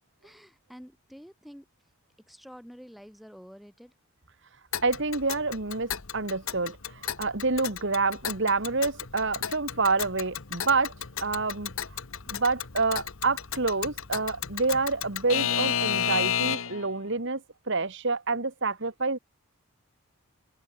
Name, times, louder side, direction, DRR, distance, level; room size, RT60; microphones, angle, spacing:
voice 1, 0.2-1.7 2.3-3.9, equal, ahead, 6.2 m, -48 dB
Alarm / Clock, 4.7-16.9, left 9 dB, 65° left, 1.2 m, -33 dB
voice 2, 4.8-10.9 11.2-11.7 12.3-19.2, right 3 dB, 55° right, 1.7 m, -28 dB
head